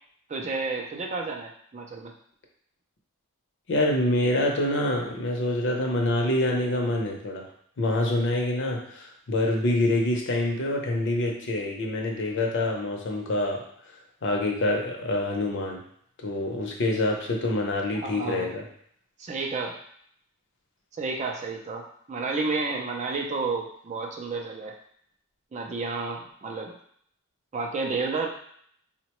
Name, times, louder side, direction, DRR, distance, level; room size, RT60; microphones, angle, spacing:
voice 1, 0.3-2.1 17.9-18.5 19.2-19.8 20.9-24.7 25.5-26.8 27.5-28.3, right 3 dB, 30° right, 1 dB, 0.4 m, -31 dB
voice 2, 3.7-7.5 7.8-13.7 14.2-15.8 16.2-18.7, left 1 dB, 55° left, 1 dB, 0.6 m, -26 dB
3.8 x 2.1 x 2.9 m, 0.65 s
head